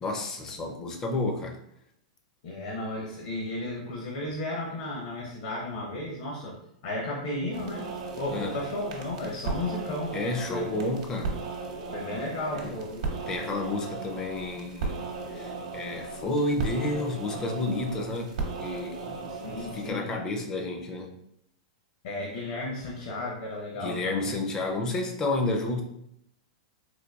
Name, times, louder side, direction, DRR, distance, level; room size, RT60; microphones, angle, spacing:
voice 1, 0.0-1.6 8.3-8.7 10.1-11.4 12.5-12.7 13.3-18.3 18.6-21.1 23.8-25.8, left 2 dB, 15° left, 3 dB, 0.4 m, -31 dB
voice 2, 2.4-6.6 6.8-10.2 10.5-10.6 11.9-13.1 19.3-20.1 22.0-24.4, left 2 dB, 55° left, -2 dB, 0.7 m, -34 dB
sound 1, 7.5-19.9, right 4 dB, 65° right, 0.8 m, -36 dB
3.9 x 2.5 x 2.3 m, 0.77 s
supercardioid pair, 165°, 4 cm